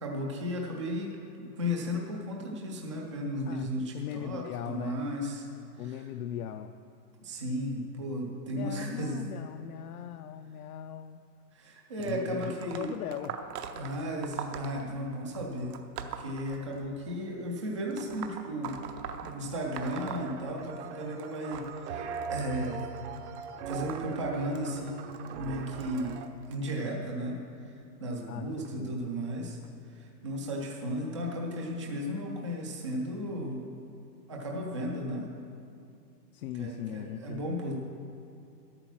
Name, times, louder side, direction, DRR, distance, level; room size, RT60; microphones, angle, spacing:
voice 1, 0.0-5.5 5.9-6.0 7.2-9.2 11.5-12.9 13.7-15.7 16.2-18.8 19.2-22.9 23.7-27.4 27.7-27.8 28.0-29.6 29.9-33.6 34.3-35.3 36.6-37.7, equal, 20° right, -1 dB, 0.3 m, -35 dB
voice 2, 3.4-5.1 5.8-6.8 8.5-11.2 12.0-13.4 28.3-29.1 36.3-37.4, left 9 dB, 60° left, 7 dB, 0.5 m, -39 dB
sound 1, 12.0-17.1 17.9-20.9 21.2-26.6 27.3-27.6 28.6-28.7 29.6-29.7 30.4-30.5, right 8 dB, 70° right, 0.9 m, -43 dB
sound 2, 19.5-26.3, right 7 dB, 45° right, 0.7 m, -41 dB
10.5 x 8.8 x 6.0 m, 2.6 s
hypercardioid pair, 155°, 50 cm